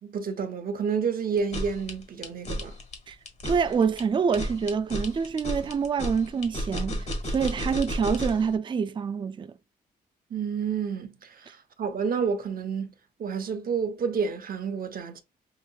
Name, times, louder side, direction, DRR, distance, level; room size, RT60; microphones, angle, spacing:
voice 1, 0.0-2.7 10.3-12.9 13.2-15.2, right 6 dB, 60° right, 0.9 m, -30 dB
sound 1, 1.4-8.5, equal, 40° left, 1.7 m, -32 dB
voice 2, 3.4-9.5, right 6 dB, 30° right, 0.3 m, -26 dB
5.8 x 2.7 x 2.3 m
cardioid pair, 75°, 17 cm